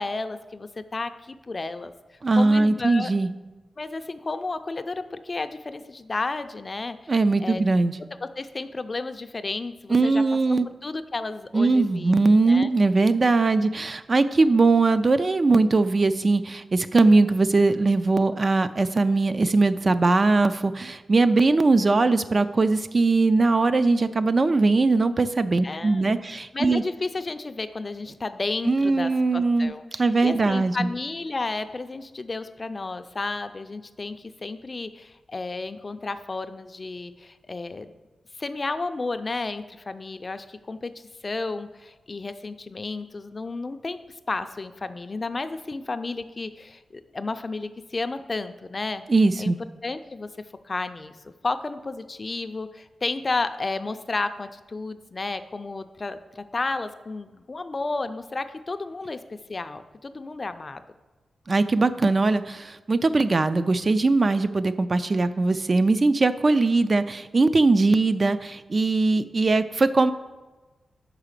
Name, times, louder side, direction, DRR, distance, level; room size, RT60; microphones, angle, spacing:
voice 1, 0.0-1.9 2.4-3.1 3.8-7.1 7.4-7.6 8.4-10.2 10.8-12.1 12.5-12.7 25.6-37.9 38.4-44.0 44.3-49.0 49.4-49.5 49.8-50.3 50.6-60.8, left 3 dB, 35° left, 10 dB, 0.4 m, -32 dB
voice 2, 2.2-3.3 7.1-8.0 9.9-10.7 11.5-26.8 28.7-30.9 49.1-49.6 61.5-70.1, right 3 dB, 40° right, 11 dB, 0.3 m, -20 dB
5.7 x 4.8 x 6.6 m, 1.2 s
wide cardioid pair, 100°, 0 cm